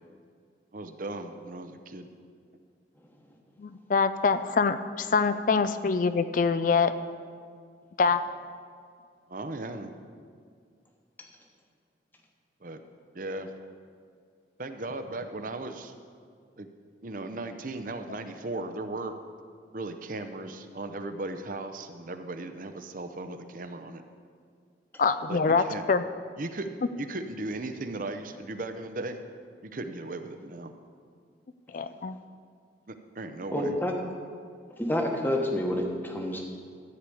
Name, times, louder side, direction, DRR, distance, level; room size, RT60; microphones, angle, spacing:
voice 1, 0.7-2.1 9.3-9.9 12.6-12.8 13.1-13.5 14.6-15.9 16.6-16.7 17.0-19.1 19.7-24.0 25.3-25.8 26.4-26.7 27.0-29.3 29.6-30.7 32.9-33.7, right 2 dB, 45° right, 8 dB, 0.7 m, -37 dB
voice 2, 3.6-6.9 8.0-8.2 25.0-26.0 31.7-32.2, left 5 dB, 45° left, 12 dB, 0.4 m, -25 dB
voice 3, 33.5-33.9 34.7-36.4, left 1 dB, 10° left, 1 dB, 1.2 m, -28 dB
13.5 x 4.8 x 8.5 m, 2.1 s
head